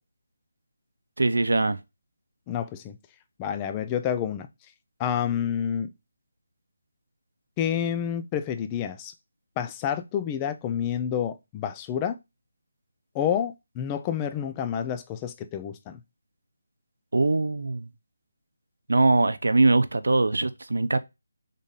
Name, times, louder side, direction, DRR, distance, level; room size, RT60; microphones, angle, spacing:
voice 1, 1.2-1.8 17.1-17.9 18.9-21.0, right 2 dB, 85° right, 0.6 m, -22 dB
voice 2, 2.5-3.0 3.4-4.5 5.0-5.9 7.6-9.1 9.6-12.2 13.1-16.0, left 9 dB, 15° left, 0.3 m, -29 dB
4.0 x 3.6 x 3.6 m
figure-of-eight pair, 170°, 0 cm